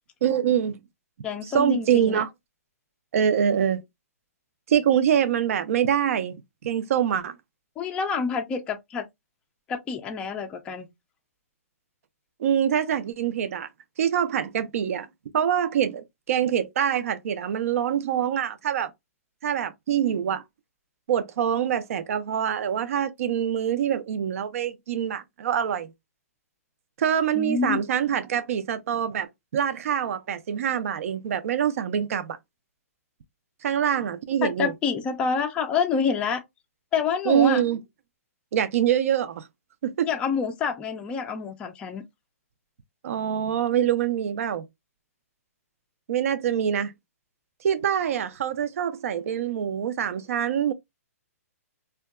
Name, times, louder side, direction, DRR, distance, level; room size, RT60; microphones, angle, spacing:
voice 1, 0.2-0.8 1.4-2.3 3.1-3.8 4.7-6.4 6.6-7.3 12.4-13.7 14.0-15.1 15.3-18.9 19.4-20.4 21.1-25.9 27.0-32.4 33.6-34.7 37.3-37.8 38.5-39.5 39.8-40.1 43.0-44.6 46.1-46.9 47.6-50.7, right 9 dB, 60° right, 0.4 m, -25 dB
voice 2, 1.2-2.2 7.8-9.1 9.7-10.9 27.3-27.8 34.4-36.4 36.9-37.6 40.0-42.0, left 6 dB, 10° left, 0.3 m, -27 dB
2.6 x 2.2 x 2.2 m
hypercardioid pair, 155°, 8 cm